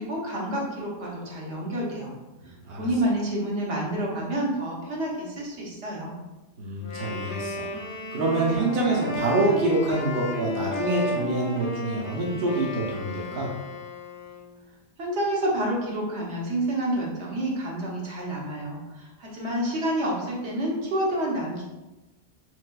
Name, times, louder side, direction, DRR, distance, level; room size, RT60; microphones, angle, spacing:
voice 1, 0.0-2.1 2.8-6.2 15.0-21.6, right 1 dB, 80° right, -4 dB, 1.1 m, -28 dB
voice 2, 2.4-2.8 6.6-7.7 8.1-13.5, right 2 dB, 60° right, -3 dB, 0.8 m, -26 dB
Wind instrument woodwind instrument, 6.8-14.5, left 1 dB, 70° left, 0.8 m, -33 dB
3.3 x 3.2 x 2.2 m, 1.1 s
omnidirectional pair, 1.1 m